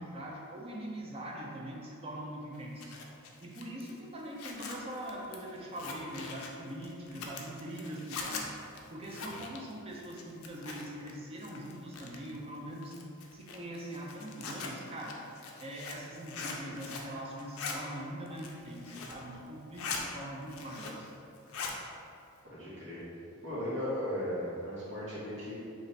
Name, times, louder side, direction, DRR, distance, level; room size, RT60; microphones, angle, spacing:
voice 1, 0.0-2.9 3.4-8.5 8.9-12.9 13.3-15.2 15.6-21.1, right 1 dB, 25° right, -2 dB, 0.4 m, -42 dB
Zipper (clothing), 2.5-11.1 11.4-12.4 12.8-17.1 17.4-17.8 18.2-19.2 19.6-20.0 20.4-21.1 21.4-21.8, left 4 dB, 70° left, 0.4 m, -42 dB
voice 2, 22.4-23.0 23.4-25.5, equal, 55° right, -9 dB, 1.2 m, -36 dB
3.2 x 2.5 x 4.0 m, 2.6 s
head